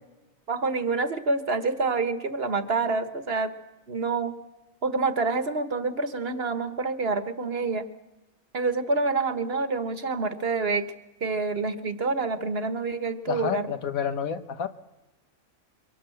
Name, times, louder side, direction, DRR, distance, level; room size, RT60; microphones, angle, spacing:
voice 1, 0.5-3.5 3.9-4.3 4.8-7.8 8.5-10.9 11.2-13.7, right 3 dB, 45° right, 11 dB, 1.6 m, -27 dB
voice 2, 13.3-14.7, left 7 dB, 80° left, 11 dB, 1.5 m, -29 dB
24.0 x 18.0 x 7.8 m, 1.0 s
omnidirectional pair, 1.4 m